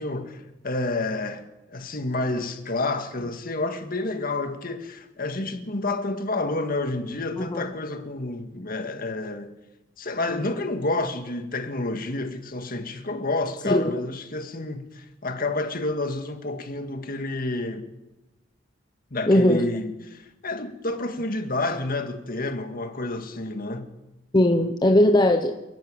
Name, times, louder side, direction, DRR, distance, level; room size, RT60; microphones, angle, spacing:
voice 1, 0.0-9.5 10.0-17.9 19.1-23.9, left 2 dB, 50° left, 2.0 m, -29 dB
voice 2, 7.4-7.7 13.6-14.0 19.3-19.7 24.3-25.6, left 1 dB, 25° left, 1.1 m, -19 dB
28.5 x 11.0 x 8.9 m
head